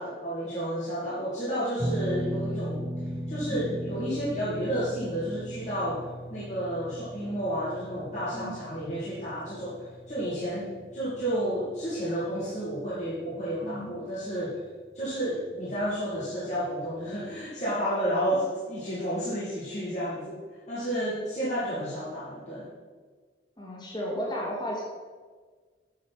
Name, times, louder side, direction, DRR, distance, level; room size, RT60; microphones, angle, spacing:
voice 1, 0.0-2.9 3.3-14.7 14.9-22.7, equal, 40° left, -10 dB, 2.4 m, -31 dB
sound 1, 1.8-14.0 14.3-14.5 16.2-16.3, equal, 20° right, 0.4 m, -38 dB
voice 2, 13.6-13.9 23.6-24.8, equal, 25° left, -3 dB, 2.3 m, -34 dB
8.7 x 6.6 x 5.9 m, 1.5 s
head